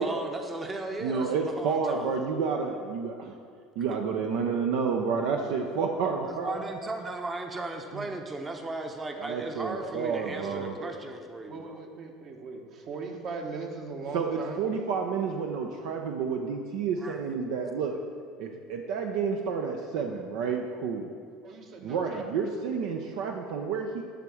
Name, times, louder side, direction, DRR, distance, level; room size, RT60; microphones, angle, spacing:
voice 1, 0.0-2.1 3.9-4.0 6.2-11.8 17.0-17.2, right 2 dB, 25° right, 4 dB, 0.8 m, -36 dB
voice 2, 1.0-3.3 3.8-6.8 7.9-8.0 9.2-10.8 14.1-18.0 18.4-21.1 21.8-24.0, right 5 dB, 70° right, 3 dB, 0.5 m, -30 dB
voice 3, 9.3-11.2 11.5-14.7 21.4-22.2, right 4 dB, 50° right, 3 dB, 1.2 m, -40 dB
10.0 x 3.6 x 6.3 m, 2.2 s
hypercardioid pair, 75°, 0 cm